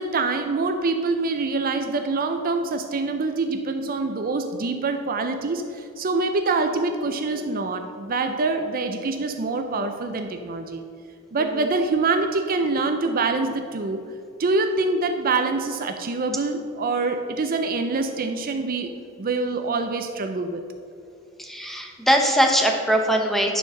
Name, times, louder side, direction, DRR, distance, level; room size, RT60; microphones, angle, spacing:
voice 1, 0.0-10.8 11.3-14.0 14.4-18.9 19.2-20.6, right 3 dB, 40° right, 6 dB, 0.5 m, -25 dB
voice 2, 11.4-11.7 21.4-23.6, equal, ahead, 2 dB, 0.9 m, -21 dB
9.9 x 4.6 x 6.4 m, 2.5 s
head